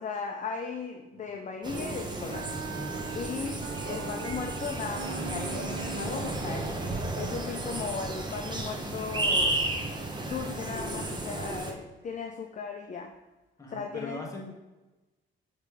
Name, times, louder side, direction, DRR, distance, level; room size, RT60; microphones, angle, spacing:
voice 1, 0.0-2.6 3.1-6.8 7.1-9.6 10.2-13.1 13.7-14.2, left 5 dB, 40° left, 4 dB, 0.6 m, -37 dB
sound 1, 1.1-4.5 5.0-6.1 9.7-9.8, right 3 dB, 85° right, 1.6 m, -49 dB
sound 2, 1.6-11.7, right 2 dB, 20° right, 1.0 m, -33 dB
Wind instrument woodwind instrument, 1.7-6.5, right 6 dB, 65° right, 0.7 m, -41 dB
voice 2, 13.6-14.5, left 1 dB, 15° left, -1 dB, 1.6 m, -40 dB
7.2 x 3.2 x 4.9 m, 1.1 s
cardioid pair, 90°, 20 cm